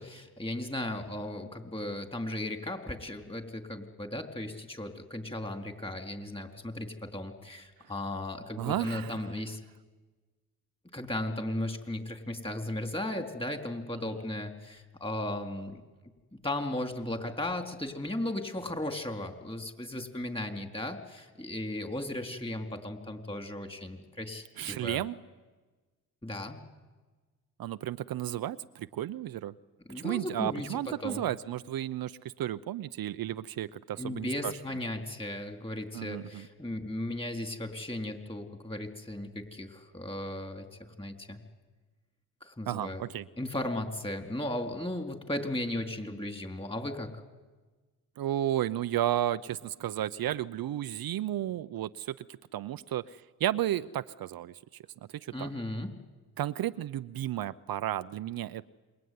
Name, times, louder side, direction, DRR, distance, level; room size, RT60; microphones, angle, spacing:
voice 1, 0.0-9.6 10.9-15.8 16.4-25.0 26.2-26.6 29.9-31.2 34.0-40.7 41.0-41.4 42.4-43.0 43.4-47.1 55.3-56.0, left 1 dB, 15° left, 5 dB, 4.0 m, -36 dB
voice 2, 8.6-9.2 24.6-25.2 27.6-29.5 29.9-34.5 35.9-36.5 42.7-43.3 48.2-52.2 52.5-54.6 55.1-55.5 56.4-58.7, right 12 dB, 60° right, 12 dB, 0.8 m, -33 dB
28.0 x 22.5 x 9.6 m, 1.3 s
supercardioid pair, 65°, 39 cm